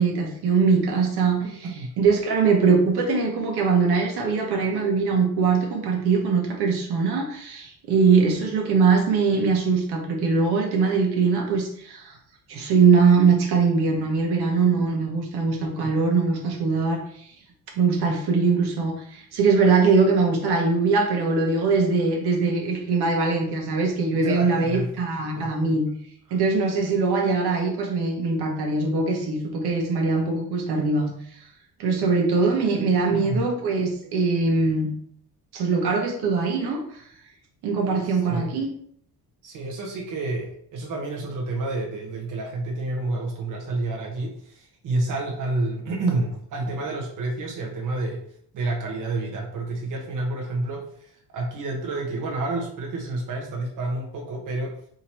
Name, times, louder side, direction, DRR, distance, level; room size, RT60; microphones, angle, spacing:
voice 1, 0.0-1.4 2.0-12.2 12.5-17.0 17.8-25.9 26.3-31.1 31.8-34.9 35.5-37.0 37.6-38.7, right 4 dB, 75° right, 1 dB, 1.2 m, -22 dB
voice 2, 1.4-1.9 15.7-15.9 24.1-24.9 25.4-25.5 26.3-26.4 32.9-33.5 38.1-38.5 39.4-48.2 48.5-54.8, right 2 dB, 50° right, -2 dB, 0.9 m, -29 dB
3.7 x 2.9 x 4.3 m, 0.64 s
cardioid pair, 165°, 39 cm